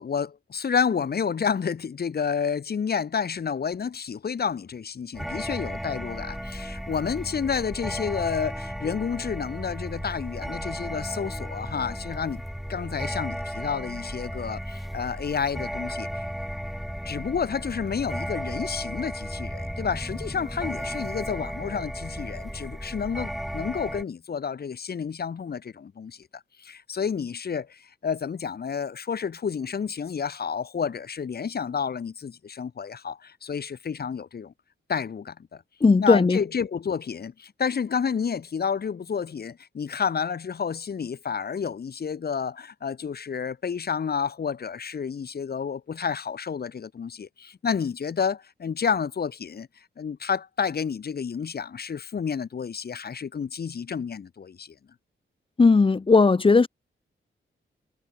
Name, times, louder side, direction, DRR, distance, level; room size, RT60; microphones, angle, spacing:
voice 1, 0.0-12.4 12.7-16.2 17.0-34.5 34.9-35.6 36.0-49.7 50.0-54.7, left 6 dB, 50° left, 0.9 m, -30 dB
sound 1, 5.1-24.0, equal, ahead, 1.9 m, -34 dB
voice 2, 35.8-36.4 55.6-56.7, left 4 dB, 25° left, 0.6 m, -17 dB
cardioid pair, 65°, 21 cm